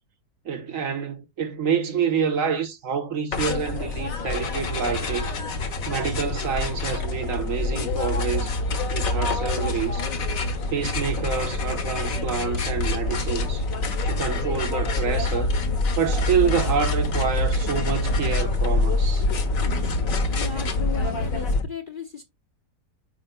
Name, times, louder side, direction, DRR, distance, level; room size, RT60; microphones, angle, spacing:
voice 1, 0.4-5.3 5.9-8.5 8.9-10.1 10.7-13.6 14.1-15.5 16.0-19.2, right 6 dB, 55° right, 1.3 m, -27 dB
sound 1, 3.3-21.6, left 2 dB, 60° left, 1.5 m, -26 dB
voice 2, 20.3-22.2, left 6 dB, 40° left, 0.8 m, -36 dB
8.8 x 5.2 x 2.2 m
omnidirectional pair, 1.7 m